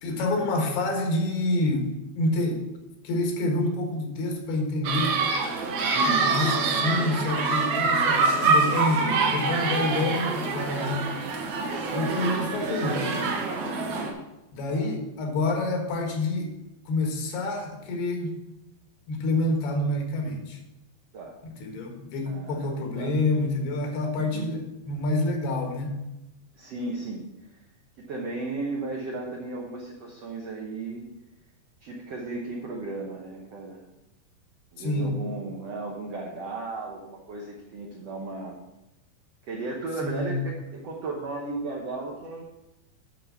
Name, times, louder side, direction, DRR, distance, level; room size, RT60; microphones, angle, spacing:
voice 1, 0.0-2.7 3.0-5.2 5.9-11.0 11.9-13.2 14.5-16.6 16.9-18.4 19.1-20.6 21.4-26.0 34.8-35.2 40.0-40.4, left 2 dB, 75° left, 2 dB, 3.4 m, -28 dB
sound 1, 4.8-14.1, right 4 dB, 65° right, 1.9 m, -25 dB
voice 2, 5.8-6.3 8.9-9.2 14.7-14.9 21.1-21.4 22.2-22.7 22.9-23.1 24.2-24.5 26.5-27.6 28.0-31.0 31.8-33.8 34.7-38.6 39.4-42.4, right 3 dB, 85° right, -1 dB, 1.4 m, -35 dB
8.6 x 6.4 x 5.7 m, 0.94 s
omnidirectional pair, 4.6 m